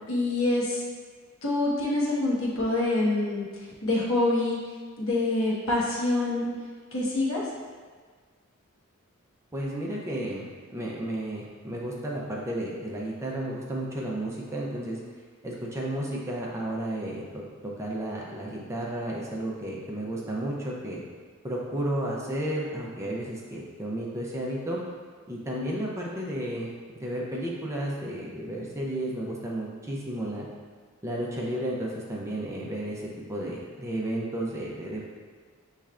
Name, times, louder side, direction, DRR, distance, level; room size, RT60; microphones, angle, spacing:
voice 1, 0.1-0.8 1.4-4.6 5.0-6.5 6.9-7.5, left 2 dB, 65° left, -5 dB, 1.1 m, -26 dB
voice 2, 9.5-10.4 10.7-15.0 15.4-21.0 21.4-24.8 25.3-26.7 27.0-30.5 31.0-33.0 33.3-35.1, right 1 dB, 15° right, -4 dB, 0.5 m, -32 dB
6.9 x 3.2 x 2.4 m, 1.5 s
head